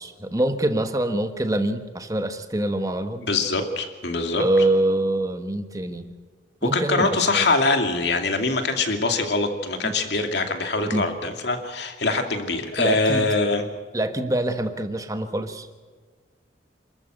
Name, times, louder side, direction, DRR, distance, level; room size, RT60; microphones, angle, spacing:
voice 1, 0.0-3.3 4.3-6.1 6.6-7.5 9.8-9.9 10.9-11.0 12.8-13.3 13.9-15.7, right 1 dB, 20° right, 8 dB, 1.4 m, -25 dB
voice 2, 3.2-4.4 6.6-13.6, left 3 dB, 70° left, 5 dB, 2.6 m, -23 dB
27.5 x 14.0 x 7.9 m, 1.5 s
head